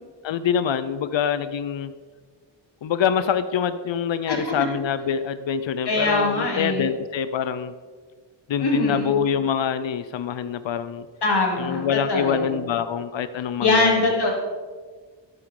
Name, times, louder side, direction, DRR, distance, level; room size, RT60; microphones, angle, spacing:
voice 1, 0.2-1.9 2.8-7.7 8.5-11.1 11.6-14.1, left 8 dB, 80° left, 12 dB, 0.7 m, -25 dB
voice 2, 5.8-6.9 8.6-9.1 11.2-12.5 13.6-14.3, left 2 dB, 60° left, -2 dB, 3.4 m, -22 dB
12.5 x 12.0 x 3.8 m, 1.5 s
wide cardioid pair, 100°, 44 cm